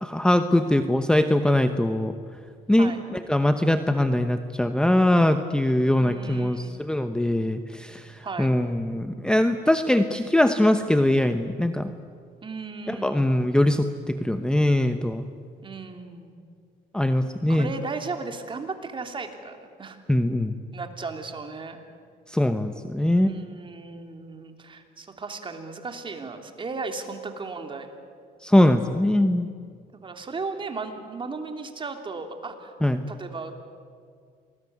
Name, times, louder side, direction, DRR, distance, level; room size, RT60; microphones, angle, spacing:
voice 1, 0.0-2.1 2.7-11.9 12.9-15.2 16.9-17.7 20.1-20.6 22.3-23.3 28.4-29.5 32.8-33.1, left 1 dB, 5° left, 8 dB, 1.0 m, -22 dB
voice 2, 6.0-6.8 8.2-8.5 12.4-13.5 15.6-16.4 17.5-20.0 20.7-21.8 23.0-27.9 29.9-32.7 33.1-33.6, right 4 dB, 30° right, 5 dB, 3.1 m, -36 dB
27.0 x 19.5 x 9.5 m, 2.2 s
cardioid pair, 110°, 17 cm